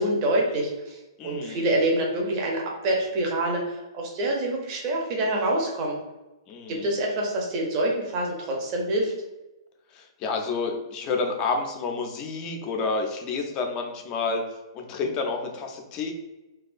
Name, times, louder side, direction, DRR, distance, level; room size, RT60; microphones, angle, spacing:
voice 1, 0.0-6.0 6.7-9.1, right 1 dB, 35° right, -1 dB, 0.6 m, -26 dB
voice 2, 1.2-1.6 6.5-6.9 9.9-14.4 14.7-16.1, left 4 dB, 30° left, 3 dB, 0.4 m, -29 dB
2.3 x 2.3 x 2.4 m, 1.0 s
figure-of-eight pair, 120°, 2 cm